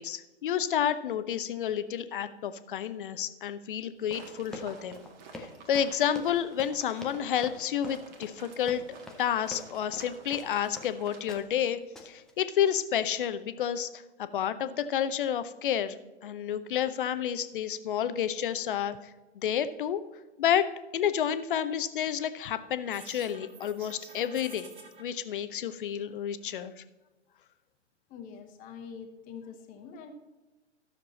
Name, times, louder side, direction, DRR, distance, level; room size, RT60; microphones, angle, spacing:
voice 1, 0.0-5.0 5.4-8.8 9.2-11.8 12.0-13.9 14.2-19.0 19.4-20.0 20.4-24.7 25.0-26.7, left 9 dB, 45° left, 12 dB, 0.8 m, -30 dB
Run, 4.0-10.9 11.3-11.6 12.0-12.3, left 2 dB, ahead, 0.4 m, -45 dB
sound 1, 4.1-11.3, right 5 dB, 40° right, 1.7 m, -51 dB
sound 2, 22.8-25.0, right 3 dB, 15° right, 1.4 m, -49 dB
voice 2, 28.1-30.1, left 6 dB, 25° left, 6 dB, 1.2 m, -45 dB
13.0 x 6.9 x 4.1 m, 1.1 s
figure-of-eight pair, 120°, 35 cm